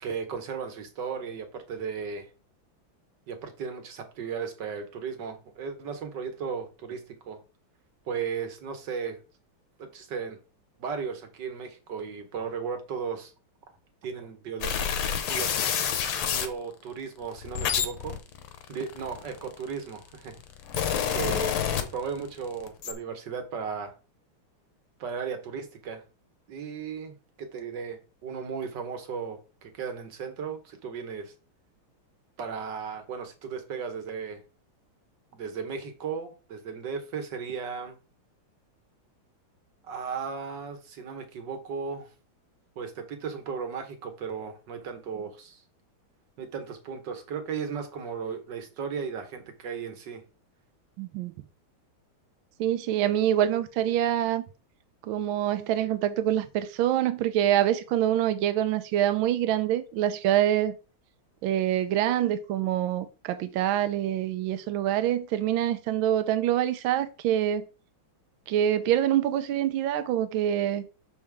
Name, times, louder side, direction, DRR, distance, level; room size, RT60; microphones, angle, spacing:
voice 1, 0.0-2.3 3.3-7.4 8.1-9.2 9.8-10.4 10.8-13.3 14.0-14.8 15.3-15.5 16.3-18.2 18.7-20.4 21.1-23.9 25.0-26.0 26.5-31.3 32.4-34.4 35.3-38.0 39.9-42.1 42.8-45.6 46.4-50.2, right 6 dB, 60° right, 1.8 m, -35 dB
sound 1, 14.6-16.5 17.2-19.6 20.3-22.3 22.6-22.9, left 8 dB, 85° left, 1.8 m, -28 dB
voice 2, 51.0-51.3 52.6-54.4 55.0-60.7 61.4-67.6 68.5-70.8, right 11 dB, 75° right, 1.4 m, -25 dB
6.4 x 5.4 x 3.5 m
omnidirectional pair, 2.3 m